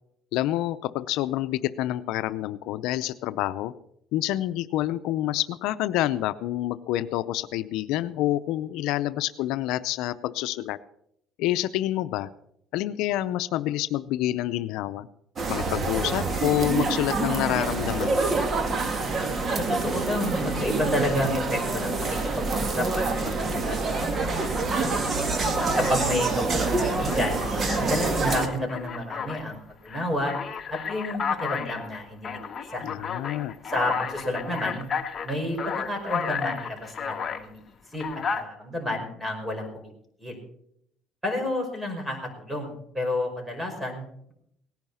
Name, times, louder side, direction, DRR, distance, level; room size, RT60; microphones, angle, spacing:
voice 1, 0.3-3.7 4.1-10.8 11.4-12.3 12.7-15.1 15.5-18.2 32.8-33.5, left 14 dB, 80° left, 12 dB, 0.6 m, -27 dB
sound 1, 15.4-28.5, right 3 dB, 35° right, 2.0 m, -26 dB
voice 2, 19.5-25.0 25.8-27.5 27.8-30.3 30.7-32.4 32.7-32.9 33.7-34.9 35.2-37.6 37.9-39.9 40.2-40.4 41.2-44.3, left 1 dB, 10° right, 3 dB, 5.3 m, -30 dB
Alarm, 25.0-25.1 25.6-26.3 26.8-29.5 29.9-37.5 37.9-38.4, left 6 dB, 35° left, 1.4 m, -33 dB
18.0 x 10.5 x 5.6 m, 0.72 s
cardioid pair, 110°, 0 cm